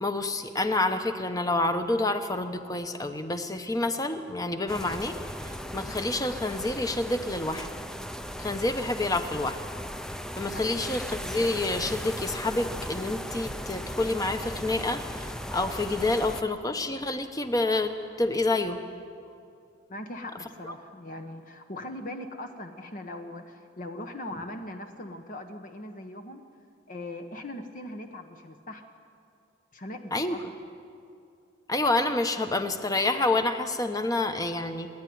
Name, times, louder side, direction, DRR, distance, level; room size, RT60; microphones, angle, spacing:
voice 1, 0.0-5.2 5.4-7.7 8.4-9.6 10.4-18.8 30.1-30.4 31.7-34.9, left 2 dB, 20° left, 8 dB, 1.0 m, -28 dB
sound 1, 4.7-16.4, equal, 5° left, 0.6 m, -37 dB
voice 2, 10.5-10.8 19.9-26.5 26.9-28.8 29.7-30.4, left 1 dB, 45° left, 6 dB, 1.1 m, -40 dB
28.5 x 10.5 x 9.5 m, 2.4 s
head